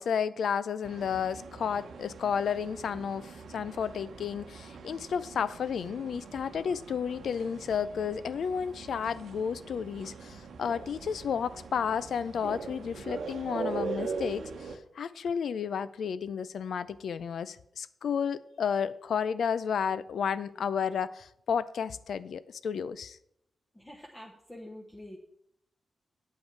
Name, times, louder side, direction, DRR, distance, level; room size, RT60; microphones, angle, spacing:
voice 1, 0.0-23.2, left 7 dB, 75° left, 0.4 m, -32 dB
sound 1, 0.8-14.8, right 5 dB, 80° right, 0.9 m, -42 dB
voice 2, 23.7-25.2, left 1 dB, 10° left, 1.1 m, -46 dB
8.4 x 8.0 x 4.5 m
wide cardioid pair, 105°, 0 cm